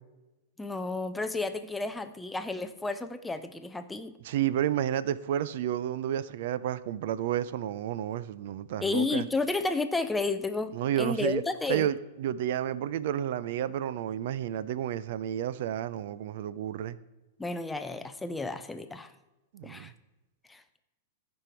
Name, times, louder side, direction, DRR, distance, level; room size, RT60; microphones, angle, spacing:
voice 1, 0.6-4.2 8.8-11.9 17.4-19.1 19.6-19.9 20.5-20.8, left 3 dB, 5° left, 0.4 m, -32 dB
voice 2, 4.2-9.2 10.7-11.4 11.7-17.0 19.5-19.9, right 10 dB, 60° right, 0.4 m, -31 dB
14.5 x 5.3 x 4.4 m
hypercardioid pair, 150°, 0 cm